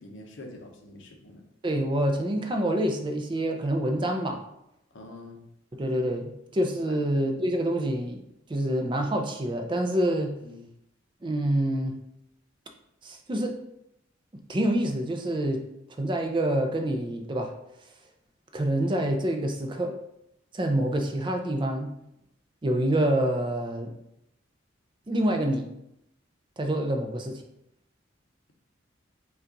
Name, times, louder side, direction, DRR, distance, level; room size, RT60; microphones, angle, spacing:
voice 1, 0.0-1.4 4.9-5.4 6.9-7.0 10.4-10.6, left 2 dB, 65° left, 2 dB, 0.8 m, -45 dB
voice 2, 1.6-4.4 5.7-8.2 8.5-10.4 11.2-12.0 13.0-13.6 14.5-15.6 16.0-17.5 18.5-20.0 20.5-21.9 22.6-23.9 25.1-25.7 26.6-27.4, right 1 dB, 25° right, 4 dB, 0.4 m, -27 dB
5.4 x 2.4 x 3.8 m, 0.80 s
head